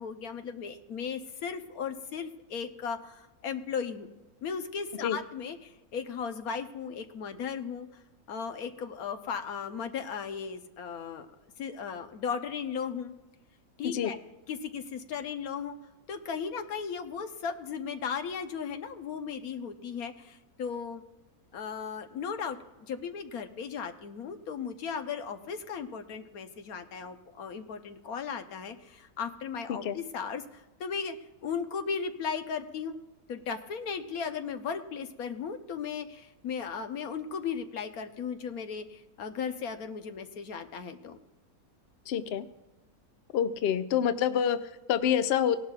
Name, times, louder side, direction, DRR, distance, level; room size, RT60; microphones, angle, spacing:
voice 1, 0.0-4.1 4.4-7.9 8.3-11.3 11.6-13.1 13.8-14.2 14.5-15.8 16.1-21.0 21.5-22.6 22.9-31.2 31.4-33.0 33.3-41.2, left 6 dB, 80° left, 7 dB, 1.4 m, -36 dB
voice 2, 42.1-42.4 43.3-45.6, left 9 dB, 60° left, 11 dB, 0.7 m, -27 dB
18.0 x 11.5 x 2.4 m, 1.1 s
omnidirectional pair, 1.5 m